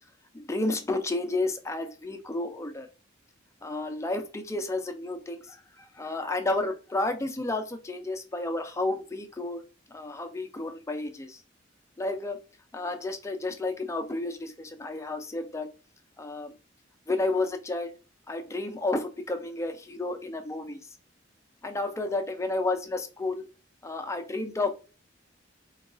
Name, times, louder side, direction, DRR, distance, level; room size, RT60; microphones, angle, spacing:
voice 1, 0.5-2.9 3.6-5.6 6.0-9.6 9.9-11.4 12.0-12.4 12.7-15.7 16.2-16.5 17.1-17.9 18.3-20.8 21.6-23.5 23.8-24.7, left 2 dB, 15° left, 6 dB, 0.4 m, -31 dB
3.8 x 2.3 x 2.4 m, 0.33 s
head